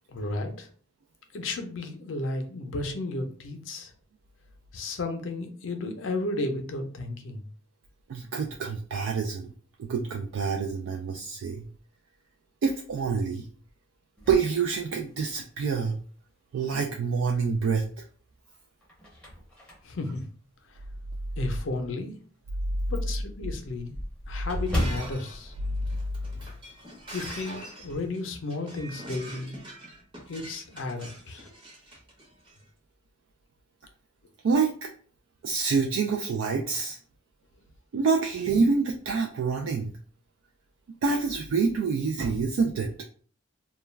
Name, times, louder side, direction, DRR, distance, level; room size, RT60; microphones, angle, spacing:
voice 1, 0.1-0.7 1.3-3.9 4.7-7.4 19.8-20.2 21.4-22.1 22.9-23.9 24.3-25.5 27.1-29.6 30.3-31.5, left 2 dB, 70° left, 5 dB, 0.5 m, -33 dB
voice 2, 8.1-9.5 9.8-11.7 12.6-13.5 14.3-16.0 16.5-18.1 34.4-34.9 35.4-37.0 37.9-39.9 41.0-42.9, right 5 dB, 75° right, 3 dB, 0.3 m, -27 dB
sound 1, 14.2-15.5 16.0-16.1 17.6-18.1 18.6-21.2 21.7-21.8 22.2-22.3 22.6-22.7 22.9-26.7 26.9-27.2 27.5-28.1, equal, 5° left, 0.6 m, -36 dB
Shatter, 24.6-32.6, right 1 dB, 25° right, 0.8 m, -43 dB
2.3 x 2.2 x 3.2 m, 0.44 s
head